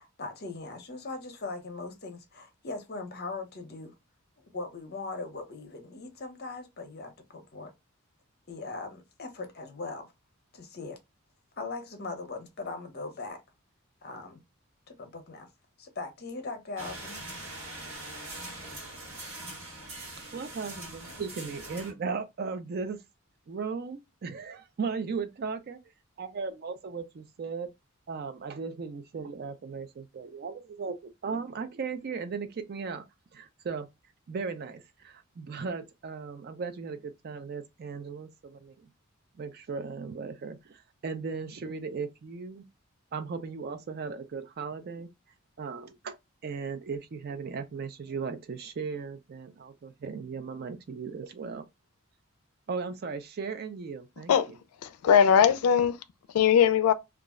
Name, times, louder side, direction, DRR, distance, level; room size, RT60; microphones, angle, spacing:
voice 1, 0.0-3.9 4.4-7.7 8.5-10.1 10.5-11.0 11.6-13.4 14.0-14.4 14.9-15.5 15.8-17.2, left 3 dB, 45° left, 0.7 m, -40 dB
sound 1, 16.8-21.9, right 1 dB, 70° right, 1.2 m, -42 dB
voice 2, 20.2-23.0 23.5-25.8 26.2-27.7 28.1-33.0 33.3-33.9 34.3-38.9 39.3-42.6 43.1-45.1 45.6-46.2 46.4-51.6 52.7-54.6, right 5 dB, 45° right, 0.4 m, -37 dB
voice 3, 54.8-56.0 56.3-56.9, left 8 dB, 85° left, 0.3 m, -20 dB
2.3 x 2.0 x 3.5 m
head